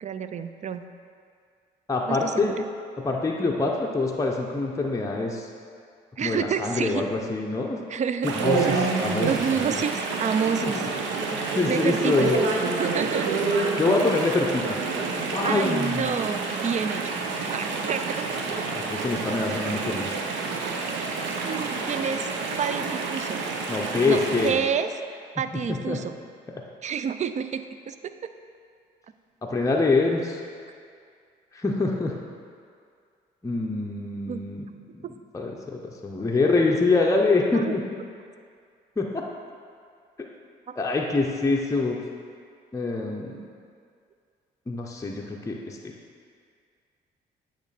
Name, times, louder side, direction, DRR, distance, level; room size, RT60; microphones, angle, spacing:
voice 1, 0.0-0.8 2.1-2.7 6.2-7.0 7.9-8.3 9.3-10.8 11.7-12.3 12.6-13.3 15.4-17.2 17.5-18.7 20.6-21.2 21.4-22.3 22.6-23.5 24.0-24.9 25.4-26.1 26.8-28.3 34.3-34.4 35.0-35.1 37.5-37.7, right 7 dB, 40° right, 10 dB, 0.4 m, -29 dB
voice 2, 1.9-2.6 3.0-5.5 6.2-7.8 8.2-9.8 10.6-10.7 11.5-12.4 13.8-14.8 15.3-16.2 18.9-20.2 23.7-24.6 25.7-26.0 29.4-30.4 31.5-32.2 33.4-34.7 34.9-35.0 35.3-37.8 39.0-39.2 40.8-42.0 42.7-43.4 44.7-45.9, left 3 dB, 15° left, -1 dB, 0.6 m, -25 dB
Chatter / Stream, 8.2-24.5, right 4 dB, 75° right, 0.6 m, -28 dB
8.2 x 3.1 x 4.1 m, 2.2 s
supercardioid pair, 60°, 19 cm